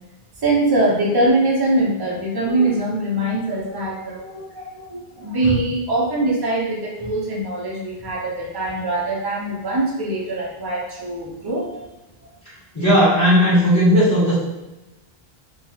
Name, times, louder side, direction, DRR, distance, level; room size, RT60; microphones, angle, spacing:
voice 1, 0.4-11.9, right 2 dB, 30° right, -5 dB, 0.5 m, -22 dB
voice 2, 12.7-14.3, equal, 15° left, -12 dB, 1.2 m, -15 dB
2.8 x 2.3 x 2.3 m, 1.0 s
omnidirectional pair, 1.0 m